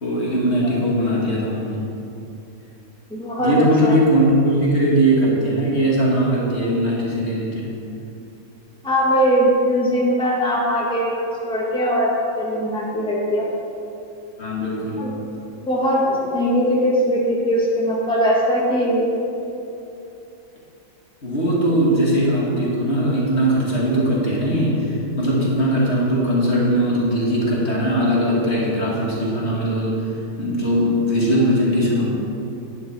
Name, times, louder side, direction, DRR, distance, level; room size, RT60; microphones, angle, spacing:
voice 1, 0.0-1.9 3.4-7.7 14.4-15.1 21.2-30.1 30.4-32.0, equal, 50° left, -5 dB, 2.3 m, -20 dB
voice 2, 3.1-3.9 8.8-13.4 15.0-15.1 15.7-19.1, equal, 5° left, -5 dB, 1.8 m, -20 dB
11.0 x 10.0 x 4.4 m, 2.8 s
omnidirectional pair, 1.4 m